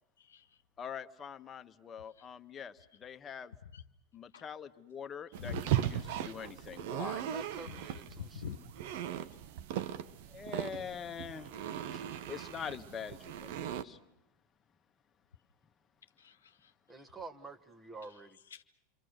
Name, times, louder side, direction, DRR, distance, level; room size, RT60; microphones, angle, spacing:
voice 1, 0.2-0.6 2.2-2.3 3.7-3.8 4.3-4.4 5.4-5.6 8.1-8.6 12.0-12.2 16.2-16.7 18.5-18.6, left 7 dB, 85° left, 9 dB, 1.1 m, -45 dB
voice 2, 0.8-3.5 4.1-7.3 10.3-11.5 11.9-12.0 12.3-14.0, left 7 dB, 30° left, 8 dB, 1.3 m, -44 dB
sound 1, 5.3-13.8, right 11 dB, 65° right, 1.0 m, -38 dB
voice 3, 7.3-8.6 16.9-18.4, right 3 dB, 15° right, 9 dB, 1.6 m, -48 dB
28.5 x 24.0 x 6.6 m, 0.79 s
hypercardioid pair, 90°, 0 cm